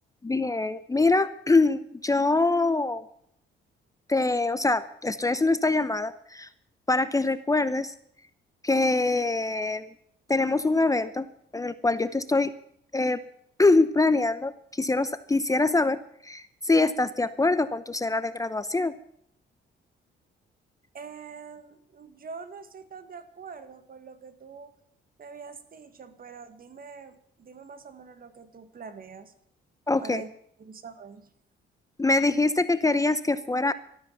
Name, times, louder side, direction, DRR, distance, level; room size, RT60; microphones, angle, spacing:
voice 1, 0.2-3.0 4.1-6.5 6.9-7.9 8.6-9.9 10.3-11.3 11.5-12.5 12.9-13.2 13.6-18.9 29.9-30.2 32.0-33.7, left 3 dB, 15° left, 13 dB, 0.8 m, -24 dB
voice 2, 20.9-24.7 25.2-29.3 30.0-30.3 30.6-31.3, right 5 dB, 45° right, 10 dB, 1.8 m, -44 dB
13.5 x 13.0 x 7.2 m, 0.68 s
cardioid pair, 90°, 20 cm